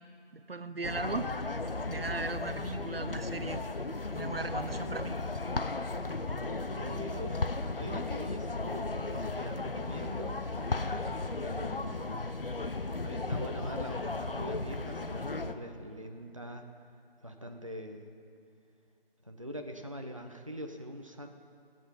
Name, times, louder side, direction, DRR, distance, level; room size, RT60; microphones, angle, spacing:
voice 1, 0.3-1.3 1.9-3.6 4.1-5.2, right 3 dB, 70° right, 11 dB, 0.7 m, -37 dB
sound 1, 0.8-15.5, left 3 dB, 65° left, 0.8 m, -35 dB
voice 2, 6.7-10.4 11.4-12.4 13.0-16.6 17.2-18.1 19.2-21.3, equal, 35° right, 4 dB, 0.7 m, -43 dB
17.5 x 8.2 x 5.7 m, 2.3 s
figure-of-eight pair, 170°, 30 cm